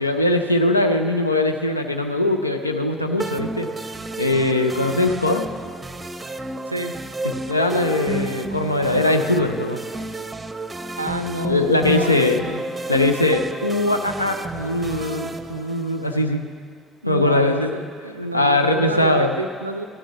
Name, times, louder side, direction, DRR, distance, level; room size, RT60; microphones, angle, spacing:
voice 1, 0.0-3.7 4.2-5.5 7.5-9.8 11.5-12.4 12.9-16.4 17.1-17.8 18.3-19.3, left 2 dB, 90° left, 6 dB, 0.5 m, -21 dB
sound 1, 3.2-16.2, right 2 dB, 20° right, 0.7 m, -31 dB
voice 2, 11.0-12.6 17.0-19.8, right 1 dB, 90° right, 9 dB, 0.4 m, -29 dB
16.0 x 12.5 x 3.1 m, 2.3 s
figure-of-eight pair, 50°, 0 cm